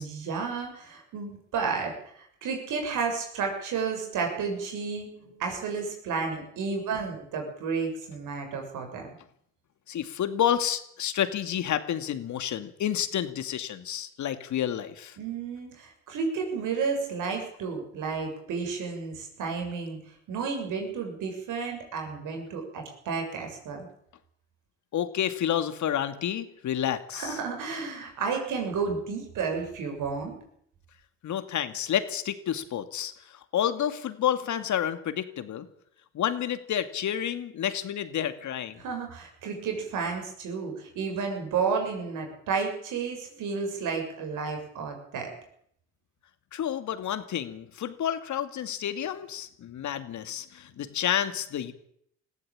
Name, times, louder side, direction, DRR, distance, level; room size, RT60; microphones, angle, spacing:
voice 1, 0.0-9.1 15.2-20.0 20.3-23.9 27.1-30.3 38.8-45.3, right 5 dB, 75° right, 3 dB, 7.2 m, -32 dB
voice 2, 9.9-15.2 24.9-27.4 31.2-35.7 36.1-38.8 46.5-51.7, left 10 dB, 65° left, 11 dB, 2.4 m, -30 dB
20.0 x 15.0 x 8.9 m, 0.69 s
hypercardioid pair, 55°, 32 cm